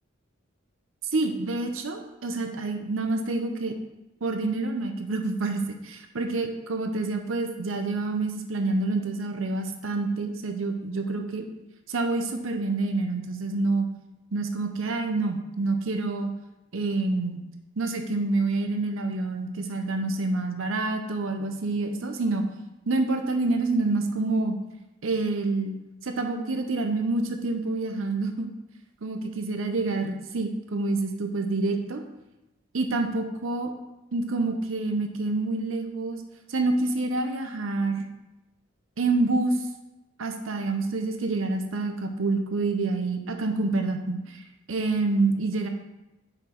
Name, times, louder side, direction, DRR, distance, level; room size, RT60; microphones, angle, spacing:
voice 1, 1.1-3.7 4.2-11.4 11.9-13.9 14.3-16.3 16.7-17.4 17.8-22.4 22.9-24.5 25.0-25.7 26.0-28.5 29.0-32.0 32.7-33.7 34.1-36.2 36.5-38.1 39.0-39.6 40.2-44.4 44.7-45.7, right 3 dB, 85° right, 5 dB, 0.7 m, -27 dB
5.8 x 4.9 x 4.5 m, 0.96 s
head